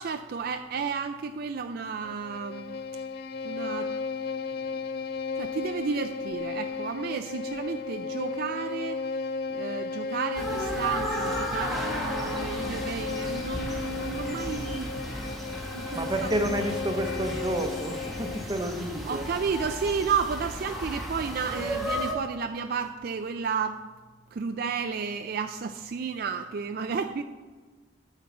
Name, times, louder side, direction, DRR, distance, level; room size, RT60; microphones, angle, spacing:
voice 1, 0.0-2.8 3.4-3.9 4.5-4.9 5.3-9.0 9.5-14.9 15.7-16.3 19.0-23.9 24.3-27.2, right 5 dB, 50° right, 7 dB, 0.4 m, -32 dB
Bowed string instrument, 2.0-18.6, left 4 dB, 55° left, 0.4 m, -34 dB
sound 1, 10.4-22.1, equal, ahead, 1.3 m, -34 dB
voice 2, 15.9-19.2, right 1 dB, 25° right, 6 dB, 0.8 m, -30 dB
9.5 x 4.5 x 7.2 m, 1.4 s
head